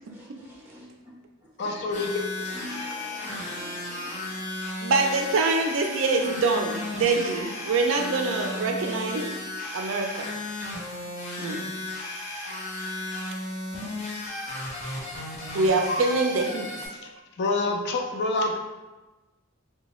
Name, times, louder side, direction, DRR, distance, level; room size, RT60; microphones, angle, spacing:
voice 1, 0.1-0.8 1.6-1.8 2.5-4.3, equal, 10° right, -6 dB, 0.9 m, -45 dB
voice 2, 1.6-2.1 15.9-16.0 16.9-17.1 17.4-18.6, left 2 dB, 55° left, 3 dB, 0.4 m, -27 dB
sound 1, 1.9-16.9, left 2 dB, 35° left, 0.8 m, -34 dB
voice 3, 4.8-9.3 9.7-10.3 11.4-11.7 15.5-16.8, right 3 dB, 65° right, 3 dB, 0.4 m, -25 dB
3.8 x 2.2 x 3.0 m, 1.2 s
head